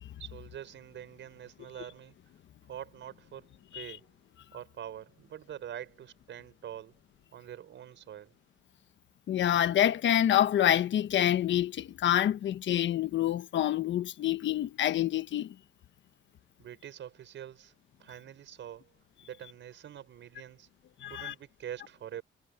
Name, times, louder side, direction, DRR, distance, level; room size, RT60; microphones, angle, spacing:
voice 1, 0.2-2.1 2.6-4.1 4.5-6.9 7.3-8.3 16.6-17.7 18.0-18.9 19.2-20.7 21.1-22.2, right 10 dB, 70° right, 6.3 m, -45 dB
voice 2, 9.3-15.5 21.0-21.3, left 11 dB, 70° left, 1.3 m, -27 dB
cardioid pair, 90°, 20 cm